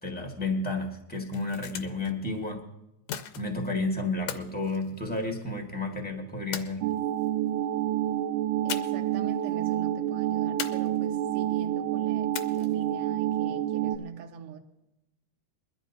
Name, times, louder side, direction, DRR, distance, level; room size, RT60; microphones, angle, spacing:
voice 1, 0.0-2.6 3.3-6.9, left 2 dB, 10° left, 0.6 m, -31 dB
sound 1, 1.1-2.1 3.1-3.7 4.3-5.5 6.5-7.3 8.7-9.2 9.4-9.5 10.6-11.3 12.3-12.9, left 10 dB, 85° left, 2.2 m, -38 dB
sound 2, 6.8-14.0, right 12 dB, 85° right, 2.1 m, -28 dB
voice 2, 8.6-14.6, right 7 dB, 60° right, 1.8 m, -44 dB
22.5 x 12.5 x 2.7 m
omnidirectional pair, 3.5 m